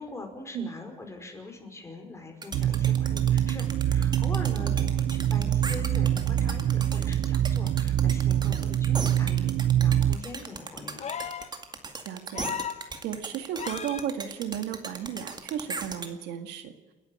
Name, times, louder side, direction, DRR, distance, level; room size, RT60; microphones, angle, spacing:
voice 1, 0.0-11.1, left 2 dB, 15° left, 3 dB, 5.3 m, -42 dB
sound 1, 2.4-16.1, right 4 dB, 25° right, 2.2 m, -37 dB
sound 2, 2.5-10.2, right 11 dB, 60° right, 0.8 m, -25 dB
sound 3, 11.0-11.5 12.3-12.8 13.6-14.1 15.5-15.6, left 8 dB, 40° left, 1.4 m, -35 dB
voice 2, 12.1-12.6 13.0-16.7, right 9 dB, 85° right, 8 dB, 2.0 m, -34 dB
30.0 x 11.0 x 8.9 m, 1.2 s
cardioid pair, 110°, 17 cm